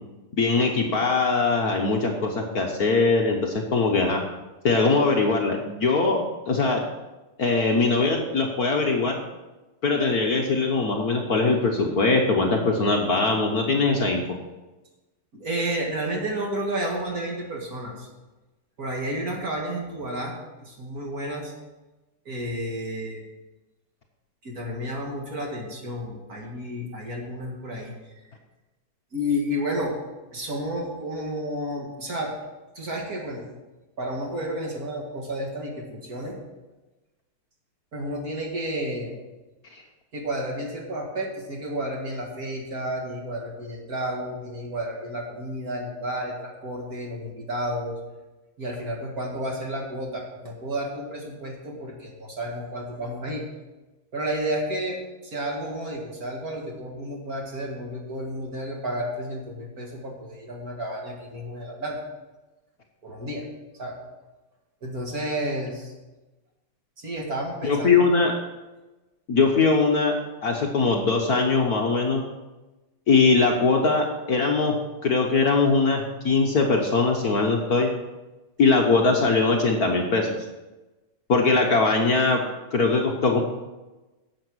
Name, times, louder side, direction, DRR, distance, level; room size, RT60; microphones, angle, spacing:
voice 1, 0.4-4.2 4.6-6.2 6.5-6.8 7.4-9.2 9.8-14.2 39.7-39.8 67.6-68.3 69.3-72.2 73.1-74.8 75.0-77.9 78.6-80.3 81.3-82.4 82.7-83.4, left 3 dB, 50° left, 1 dB, 1.3 m, -21 dB
voice 2, 15.3-18.1 18.8-20.3 20.6-21.5 22.3-23.2 24.4-28.0 29.1-30.0 30.3-32.3 32.8-33.5 34.0-36.4 37.9-39.2 40.1-47.9 48.6-53.4 54.1-62.0 63.0-63.5 63.8-64.0 64.8-65.9 67.0-68.1, equal, 45° right, 0 dB, 2.5 m, -31 dB
11.0 x 7.8 x 6.3 m, 1.1 s
omnidirectional pair, 2.4 m